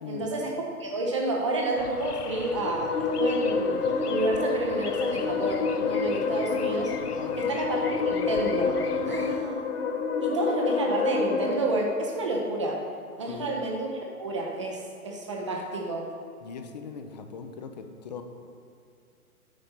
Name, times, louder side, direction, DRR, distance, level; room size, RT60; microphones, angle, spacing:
voice 1, 0.1-6.9 7.4-9.6 10.2-12.9 13.2-13.9 14.2-16.1, right 2 dB, 20° right, 0 dB, 0.5 m, -30 dB
sound 1, 1.8-9.4, left 6 dB, 90° left, 0.6 m, -41 dB
sound 2, 2.1-11.5, left 5 dB, 60° left, 1.0 m, -28 dB
voice 2, 16.4-18.2, left 6 dB, 30° left, 6 dB, 0.5 m, -40 dB
9.6 x 5.2 x 4.3 m, 2.5 s
figure-of-eight pair, 125°, 45 cm